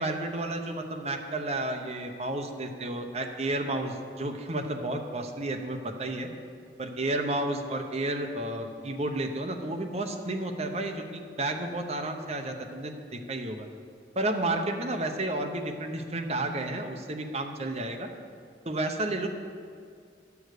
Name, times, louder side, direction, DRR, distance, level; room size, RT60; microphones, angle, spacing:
voice 1, 0.0-6.3 6.8-13.7 14.2-18.1 18.6-19.3, right 2 dB, 35° right, 4 dB, 0.9 m, -31 dB
10.5 x 7.0 x 6.5 m, 2.2 s
head